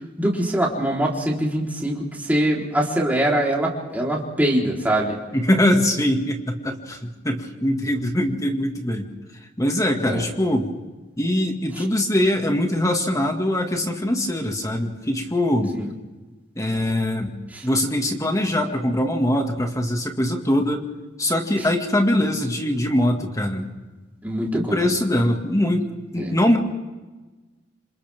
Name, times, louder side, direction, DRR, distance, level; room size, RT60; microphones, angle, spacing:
voice 1, 0.2-5.2 9.9-10.2 15.7-15.9 17.5-17.7 24.2-24.9 26.1-26.3, right 1 dB, 10° right, -3 dB, 4.0 m, -23 dB
voice 2, 5.3-9.1 9.6-10.7 11.2-15.8 16.6-17.3 17.6-20.8 21.2-23.7 24.5-26.6, left 1 dB, 20° left, 3 dB, 2.1 m, -22 dB
27.5 x 27.0 x 3.6 m, 1.2 s
head